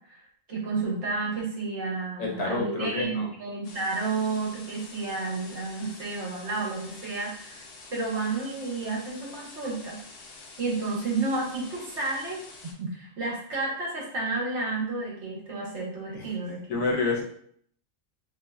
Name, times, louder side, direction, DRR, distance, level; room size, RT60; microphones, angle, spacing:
voice 1, 0.1-7.6 7.9-10.0 10.6-16.8, right 3 dB, 60° right, -3 dB, 1.3 m, -31 dB
voice 2, 2.2-3.3 16.1-16.3 16.7-17.2, left 3 dB, 80° left, 0 dB, 1.2 m, -28 dB
sound 1, 3.6-12.7, left 3 dB, 55° left, 0.7 m, -47 dB
3.5 x 3.1 x 2.2 m, 0.63 s
omnidirectional pair, 1.4 m